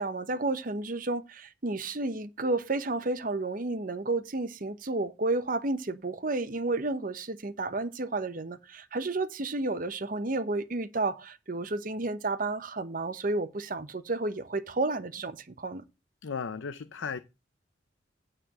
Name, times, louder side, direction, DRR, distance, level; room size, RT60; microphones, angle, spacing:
voice 1, 0.0-15.8, right 2 dB, 45° right, 0.9 m, -31 dB
voice 2, 16.2-17.2, left 5 dB, 85° left, 0.6 m, -35 dB
9.3 x 4.4 x 7.4 m
head